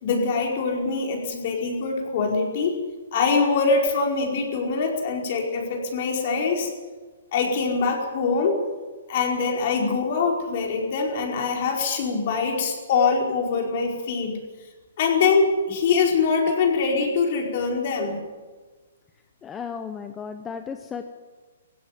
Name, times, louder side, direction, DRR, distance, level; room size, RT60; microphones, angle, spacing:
voice 1, 0.0-2.8 3.1-6.7 7.3-8.6 9.1-14.3 15.0-18.2, left 4 dB, 45° left, 1 dB, 4.8 m, -23 dB
voice 2, 19.4-21.0, left 6 dB, 10° left, 7 dB, 0.9 m, -34 dB
18.0 x 16.0 x 9.5 m, 1.3 s
hypercardioid pair, 160°, 0 cm